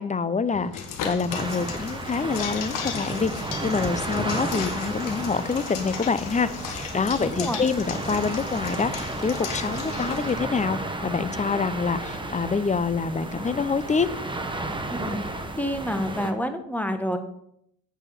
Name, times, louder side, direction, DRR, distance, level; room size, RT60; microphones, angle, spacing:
voice 1, 0.0-14.1, left 5 dB, 25° left, 14 dB, 0.7 m, -26 dB
sound 1, 0.5-16.0, left 4 dB, 55° left, 1.4 m, -43 dB
sound 2, 0.7-10.3, left 6 dB, 90° left, 1.3 m, -36 dB
sound 3, 1.3-16.3, right 2 dB, 15° right, 1.3 m, -33 dB
voice 2, 7.2-7.6 14.9-15.2 15.6-17.2, equal, 5° left, 7 dB, 1.3 m, -28 dB
8.4 x 5.0 x 6.8 m, 0.75 s
supercardioid pair, 65°, 32 cm